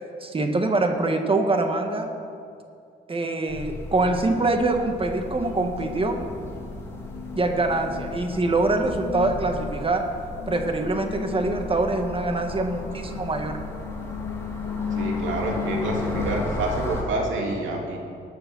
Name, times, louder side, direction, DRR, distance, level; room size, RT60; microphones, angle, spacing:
voice 1, 0.2-2.1 3.1-6.2 7.3-10.0 10.5-13.6, right 2 dB, 25° right, 4 dB, 1.6 m, -24 dB
sound 1, 3.5-17.0, left 1 dB, 15° left, 2.5 m, -36 dB
sound 2, 5.1-16.4, left 8 dB, 60° left, 0.7 m, -36 dB
voice 2, 14.9-18.0, right 2 dB, 75° right, 0 dB, 2.7 m, -28 dB
19.5 x 6.9 x 6.2 m, 2.4 s
cardioid pair, 90°, 20 cm